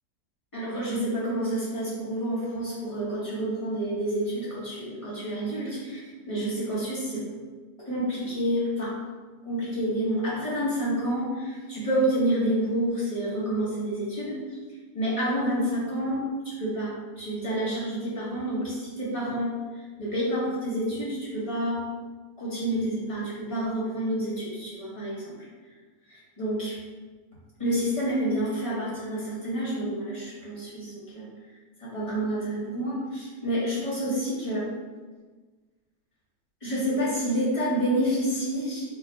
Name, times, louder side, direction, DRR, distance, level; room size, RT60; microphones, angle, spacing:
voice 1, 0.5-7.3 7.9-8.9 9.4-14.4 14.9-16.2 16.6-19.5 20.0-21.8 22.4-25.3 26.1-26.7 27.6-31.3 31.8-34.7 36.6-38.8, right 1 dB, 25° left, -8 dB, 1.2 m, -28 dB
4.7 x 4.0 x 2.2 m, 1.4 s
omnidirectional pair, 1.7 m